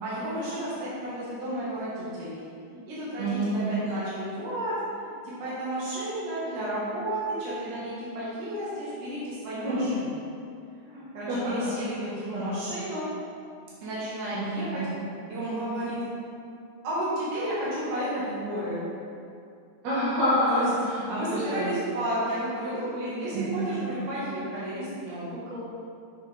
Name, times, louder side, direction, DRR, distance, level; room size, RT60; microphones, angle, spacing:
voice 1, 0.0-2.4 2.7-10.2 10.7-13.1 13.8-14.8 15.3-16.0 16.8-18.9 20.5-20.7 21.1-25.3, right 1 dB, 85° right, -8 dB, 3.3 m, -32 dB
voice 2, 3.2-3.8 9.6-9.9 11.3-11.7 12.3-12.6 14.3-15.0 19.8-21.8 23.3-23.9 25.5-25.6, equal, 60° right, -10 dB, 2.7 m, -28 dB
7.8 x 6.4 x 4.2 m, 2.4 s
omnidirectional pair, 3.5 m